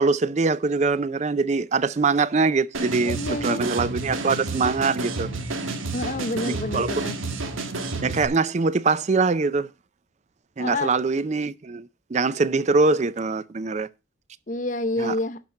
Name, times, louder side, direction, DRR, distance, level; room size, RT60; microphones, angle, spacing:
voice 1, 0.0-5.3 6.5-7.1 8.0-9.7 10.6-13.9 15.0-15.1, right 4 dB, 35° right, 0.4 m, -23 dB
sound 1, 2.7-8.3, right 3 dB, 90° right, 1.6 m, -30 dB
voice 2, 3.0-3.6 5.9-7.2 10.6-10.9 14.5-15.4, left 2 dB, 40° left, 0.7 m, -28 dB
11.5 x 4.5 x 6.2 m
head